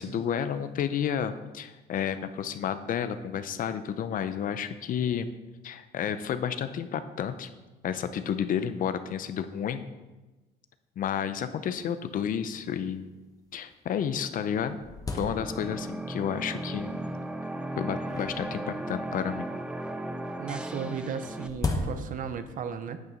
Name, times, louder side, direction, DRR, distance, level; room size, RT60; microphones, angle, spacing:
voice 1, 0.0-5.3 5.6-7.5 7.8-9.8 11.0-13.1 13.5-14.8 15.1-17.0 17.8-19.5, left 8 dB, 55° left, 11 dB, 0.7 m, -31 dB
sound 1, 11.9-12.0 12.2-12.3 13.0-13.1 13.7-13.8 14.2-16.0 16.7-17.1 18.1-19.4 20.7-22.5, left 2 dB, 20° left, 1.2 m, -36 dB
sound 2, 15.1-21.5, right 1 dB, 5° right, 0.6 m, -36 dB
voice 2, 20.4-23.0, right 6 dB, 50° right, 10 dB, 0.8 m, -35 dB
9.0 x 6.6 x 5.2 m, 1.1 s
cardioid pair, 110°, 17 cm